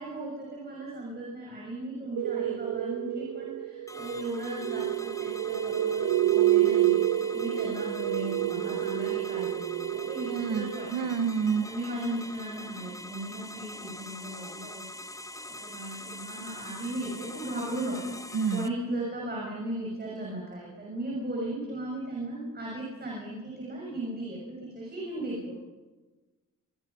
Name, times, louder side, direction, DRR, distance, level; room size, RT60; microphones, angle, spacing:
voice 1, 0.0-11.1 11.6-15.0 15.6-25.5, right 1 dB, 30° right, -3 dB, 6.6 m, -36 dB
sound 1, 2.2-10.9, right 13 dB, 70° right, 0.7 m, -28 dB
sound 2, 3.9-18.7, left 1 dB, 10° left, 0.8 m, -44 dB
voice 2, 10.3-11.7 18.3-18.7, right 6 dB, 85° right, 9 dB, 1.9 m, -28 dB
24.0 x 23.0 x 5.7 m, 1.2 s
wide cardioid pair, 170°, 32 cm